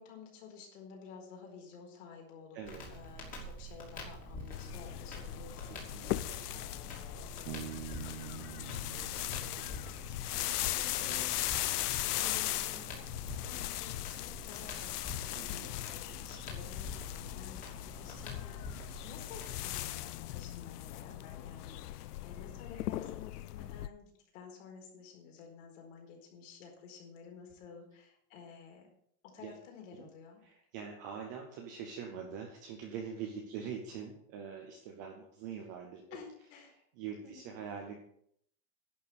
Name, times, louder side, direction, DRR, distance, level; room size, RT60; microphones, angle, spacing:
voice 1, 0.0-5.9 6.5-11.4 11.8-12.9 13.3-15.1 15.5-28.9 29.2-30.4 36.1-36.7 37.2-37.5, left 5 dB, 55° left, 1 dB, 4.6 m, -52 dB
Crackle, 2.6-19.8, left 1 dB, 20° left, 2.8 m, -48 dB
sound 1, 4.5-23.9, left 15 dB, 85° left, 0.7 m, -38 dB
voice 2, 5.7-6.8 10.3-11.2 15.3-15.7 29.4-29.5 29.9-30.1 30.4-36.2 36.7-38.0, right 7 dB, 15° right, 2 dB, 0.4 m, -44 dB
Bass guitar, 7.5-11.0, right 11 dB, 40° right, 0.9 m, -47 dB
11.0 x 6.8 x 8.0 m, 0.69 s
supercardioid pair, 170°, 45 cm